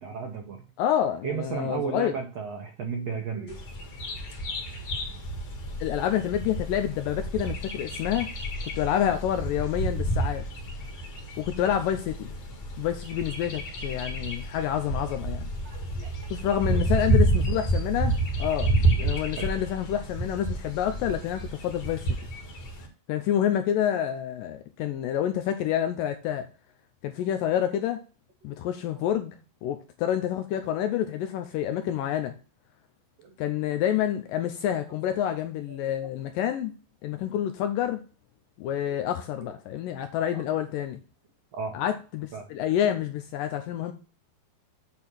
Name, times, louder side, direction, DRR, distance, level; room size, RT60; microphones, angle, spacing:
voice 1, 0.0-0.6 1.2-3.6 15.1-15.2 15.6-16.3 16.7-16.8 19.0-19.5 29.0-29.1 31.2-31.3 33.2-33.7 34.7-34.8 35.7-35.9 39.4-39.5 40.3-40.4 41.5-41.8 42.3-42.5, right 6 dB, 90° right, 1.4 m, -35 dB
voice 2, 0.8-2.1 5.8-8.3 8.8-10.4 11.4-12.3 12.8-15.5 16.3-18.7 19.0-22.1 23.1-26.5 27.0-28.0 28.4-29.4 29.6-32.3 33.4-36.7 37.0-38.0 38.6-41.0 41.7-43.9, left 10 dB, 85° left, 2.0 m, -28 dB
Bird vocalization bird call bird song, 3.5-22.9, right 2 dB, 45° left, 2.3 m, -30 dB
sound 1, 5.0-21.5, left 1 dB, 65° left, 1.0 m, -41 dB
8.7 x 3.7 x 6.1 m
omnidirectional pair, 4.5 m